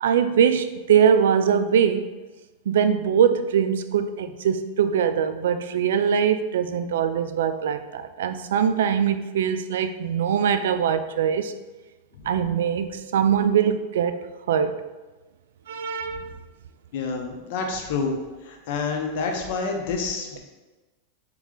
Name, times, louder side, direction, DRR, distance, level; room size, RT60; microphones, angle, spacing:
voice 1, 0.0-2.1 2.7-11.5 12.3-14.9 15.7-16.3, right 8 dB, 85° right, 0.3 m, -22 dB
voice 2, 16.9-18.2 18.4-20.4, left 4 dB, 65° left, 0.8 m, -28 dB
3.7 x 3.1 x 3.7 m
supercardioid pair, 135°, 0 cm